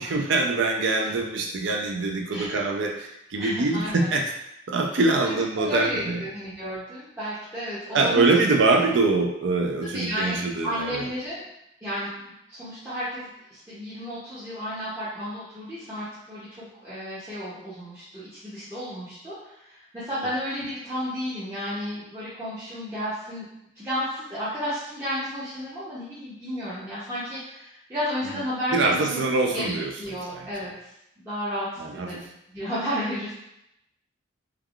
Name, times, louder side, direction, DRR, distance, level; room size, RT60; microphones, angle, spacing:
voice 1, 0.0-4.2 4.7-6.2 7.9-11.1 28.7-29.9 30.3-30.5 31.8-32.1, right 3 dB, 70° right, 1 dB, 0.4 m, -24 dB
voice 2, 3.4-4.1 5.2-8.3 9.8-10.4 10.6-11.5 11.8-12.1 12.5-23.5 23.7-29.2 29.5-30.9 31.2-33.3, equal, 15° right, -13 dB, 0.6 m, -32 dB
3.3 x 2.2 x 2.3 m, 0.82 s
head